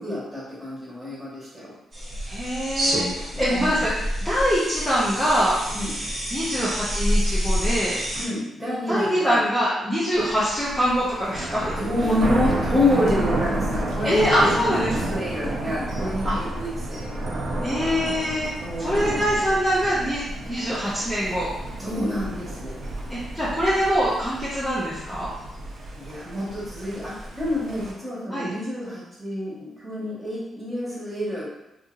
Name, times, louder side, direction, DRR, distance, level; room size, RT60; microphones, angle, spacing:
voice 1, 0.0-1.7 3.3-3.8 5.7-5.9 8.2-9.4 11.8-17.3 18.6-19.2 21.8-22.8 25.9-31.5, left 1 dB, 15° right, -8 dB, 1.3 m, -28 dB
sound 1, 1.9-8.3, equal, 40° right, 0.9 m, -27 dB
voice 2, 2.2-3.1 3.4-3.9 4.2-5.6 6.3-8.0 8.9-11.7 14.0-15.1 16.2-16.4 17.6-18.5 18.8-21.5 23.1-25.3 28.3-28.5, equal, 5° left, -10 dB, 0.7 m, -23 dB
Thunder, 10.1-27.9, right 2 dB, 65° right, 0.6 m, -31 dB
2.7 x 2.6 x 2.5 m, 0.90 s
cardioid pair, 110°, 0 cm